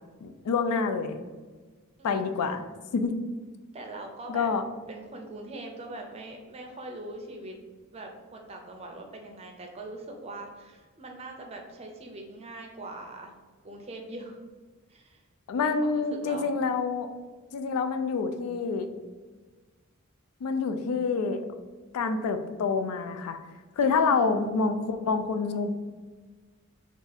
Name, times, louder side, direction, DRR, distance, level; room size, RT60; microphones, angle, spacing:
voice 1, 0.2-1.2 2.0-2.6 2.9-3.2 4.3-4.6 15.5-17.1 17.5-18.9 20.4-21.4 21.9-23.4 23.8-25.7, left 4 dB, 85° left, 8 dB, 0.3 m, -27 dB
voice 2, 2.0-2.6 3.7-4.5 4.9-7.5 7.9-13.3 13.6-14.4 14.9-15.2 15.6-16.5 23.8-24.3, right 2 dB, 25° right, 2 dB, 0.4 m, -42 dB
2.7 x 2.4 x 4.0 m, 1.4 s
head